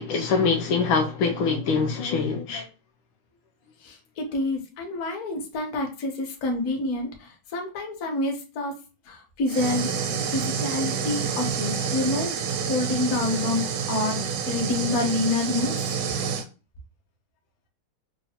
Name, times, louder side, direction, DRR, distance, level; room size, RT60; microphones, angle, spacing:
voice 1, 0.0-2.7, left 4 dB, 75° left, 1.3 m, -24 dB
voice 2, 3.8-8.8 9.0-12.4 12.7-16.0, left 2 dB, 55° left, 1.0 m, -28 dB
sound 1, 9.5-16.4, right 6 dB, 75° right, 1.0 m, -28 dB
5.4 x 2.0 x 2.8 m
omnidirectional pair, 2.3 m